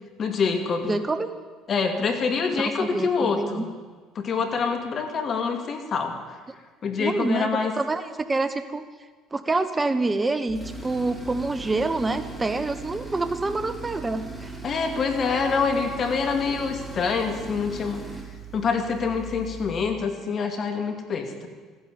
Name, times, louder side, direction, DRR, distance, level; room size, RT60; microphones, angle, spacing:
voice 1, 0.2-1.0 1.7-3.7 4.2-6.1 6.8-7.7 14.6-18.0 18.5-21.5, left 5 dB, 50° left, 5 dB, 2.5 m, -26 dB
voice 2, 0.8-1.3 2.5-3.6 7.0-8.8 9.3-14.5, right 3 dB, 20° right, 11 dB, 1.0 m, -27 dB
Tools, 10.5-20.0, right 3 dB, ahead, 3.2 m, -38 dB
15.0 x 10.5 x 8.7 m, 1.4 s
hypercardioid pair, 70°, 0 cm